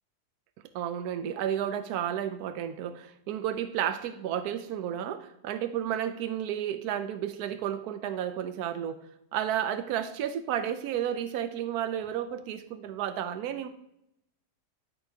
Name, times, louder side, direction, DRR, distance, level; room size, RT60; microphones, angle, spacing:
voice 1, 0.7-13.7, right 10 dB, 75° right, 10 dB, 1.1 m, -32 dB
12.0 x 6.1 x 2.8 m, 0.81 s
omnidirectional pair, 1.7 m